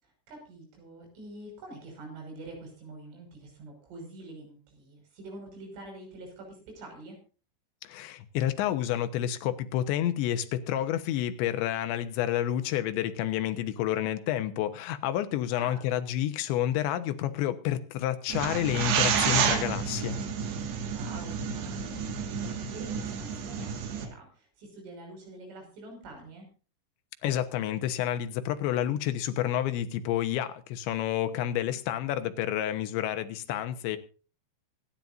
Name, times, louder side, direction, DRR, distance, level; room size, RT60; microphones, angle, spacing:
voice 1, 0.0-7.2 15.5-16.0 20.8-26.5, right 2 dB, 90° right, 2 dB, 8.3 m, -46 dB
voice 2, 7.8-20.2 27.2-34.0, left 11 dB, 75° left, 9 dB, 3.2 m, -29 dB
sound 1, 18.3-24.1, right 7 dB, 65° right, 3.8 m, -30 dB
25.0 x 11.0 x 2.6 m, 0.36 s
omnidirectional pair, 5.4 m